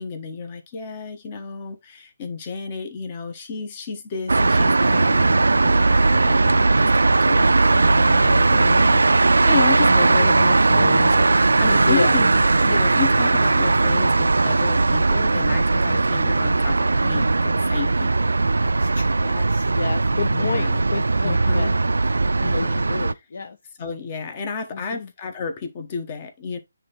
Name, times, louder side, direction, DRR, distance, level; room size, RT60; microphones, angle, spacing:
voice 1, 0.0-18.1 20.3-20.8 21.2-21.7 22.4-22.8 23.1-23.2 23.8-26.6, left 6 dB, 30° left, 1.2 m, -32 dB
sound 1, 4.3-23.1, right 3 dB, 70° right, 0.3 m, -18 dB
voice 2, 11.8-12.1 18.6-21.7 22.2-23.6 24.9-25.1, left 4 dB, 55° left, 0.6 m, -30 dB
9.4 x 3.5 x 3.0 m
figure-of-eight pair, 145°, 0 cm